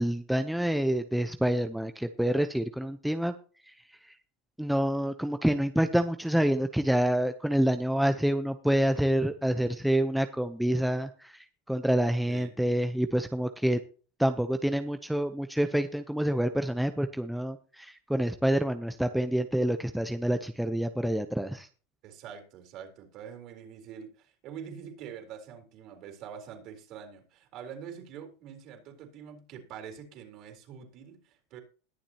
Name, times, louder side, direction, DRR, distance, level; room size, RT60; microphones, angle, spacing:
voice 1, 0.0-3.3 3.7-3.8 4.0-4.1 4.6-13.8 14.2-21.7, right 1 dB, ahead, 8 dB, 0.7 m, -27 dB
voice 2, 12.3-12.6 22.0-31.6, right 8 dB, 45° right, 4 dB, 3.9 m, -45 dB
21.0 x 7.3 x 2.9 m, 0.38 s
supercardioid pair, 135°, 0 cm